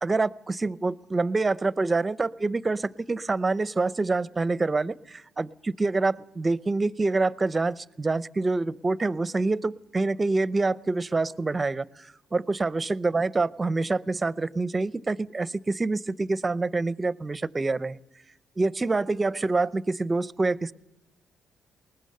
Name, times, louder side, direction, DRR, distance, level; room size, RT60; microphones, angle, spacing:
voice 1, 0.0-18.0 18.6-20.7, right 3 dB, 25° right, 18 dB, 0.6 m, -26 dB
21.0 x 19.5 x 6.7 m, 0.97 s
cardioid pair, 90°, 0 cm